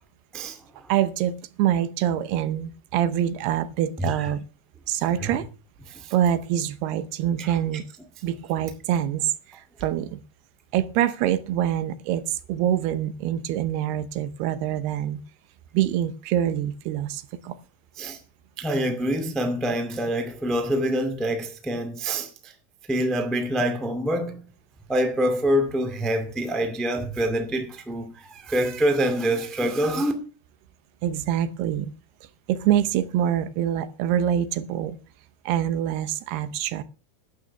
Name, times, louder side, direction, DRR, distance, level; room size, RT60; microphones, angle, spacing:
voice 1, 0.9-4.4 4.9-5.5 6.1-7.9 8.2-10.2 10.7-15.2 15.7-17.6 31.0-31.9 32.5-35.0 35.5-36.8, right 11 dB, 80° right, 2.8 m, -25 dB
voice 2, 18.6-22.5 22.9-24.4 24.9-30.1, right 1 dB, ahead, 0.5 m, -26 dB
11.5 x 8.9 x 7.0 m
omnidirectional pair, 4.7 m